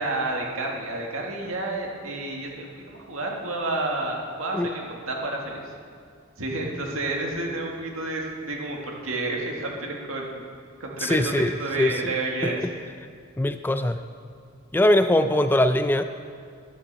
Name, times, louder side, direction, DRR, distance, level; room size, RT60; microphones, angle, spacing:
voice 1, 0.0-5.7 6.4-10.4 10.8-12.6, right 2 dB, 90° right, 0 dB, 1.9 m, -30 dB
voice 2, 11.0-11.5 11.8-12.1 12.4-12.7 13.4-14.0 14.7-16.0, left 1 dB, 10° left, 9 dB, 0.3 m, -22 dB
13.0 x 10.5 x 4.1 m, 2.2 s
head